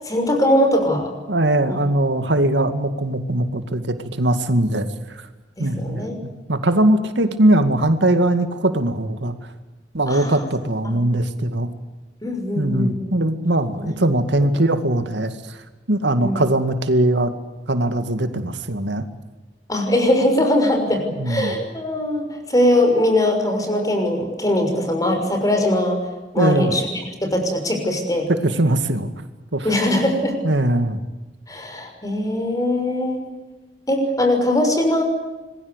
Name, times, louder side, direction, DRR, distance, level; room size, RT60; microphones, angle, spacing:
voice 1, 0.0-1.1 1.7-1.8 5.6-6.2 10.1-10.4 10.8-11.0 12.2-12.9 13.7-14.0 16.2-16.4 19.7-26.0 26.3-26.9 27.2-28.3 29.6-30.3 31.5-33.2 33.9-35.0, left 1 dB, 20° left, 4 dB, 6.2 m, -21 dB
voice 2, 1.3-5.3 5.6-6.1 6.5-9.3 9.9-11.7 12.6-15.6 15.9-17.3 17.7-19.1 21.2-21.5 26.4-26.7 28.3-29.2 29.5-29.7 30.4-31.0, right 1 dB, 80° right, 9 dB, 2.2 m, -20 dB
26.5 x 21.5 x 8.2 m, 1.2 s
head